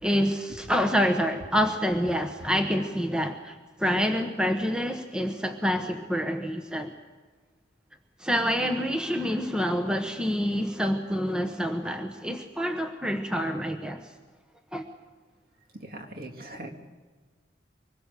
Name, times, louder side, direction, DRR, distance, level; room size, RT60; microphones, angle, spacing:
voice 1, 0.0-6.9 8.2-14.1 14.7-14.9, equal, 5° right, 5 dB, 1.1 m, -27 dB
voice 2, 15.7-16.8, right 1 dB, 55° right, 3 dB, 2.5 m, -41 dB
24.5 x 21.0 x 6.8 m, 1.4 s
head